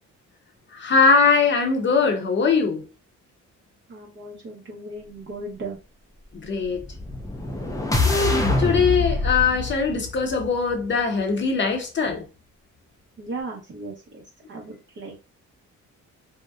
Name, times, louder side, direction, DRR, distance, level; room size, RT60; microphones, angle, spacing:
voice 1, 0.7-2.8 6.4-6.9 8.0-12.2, left 5 dB, 40° left, 0.7 m, -21 dB
voice 2, 3.9-5.8 13.2-14.2 14.5-15.2, right 2 dB, 40° right, 0.7 m, -36 dB
sound 1, 6.7-11.0, left 3 dB, 10° left, 0.4 m, -25 dB
2.7 x 2.0 x 2.3 m
cardioid pair, 90°, 30 cm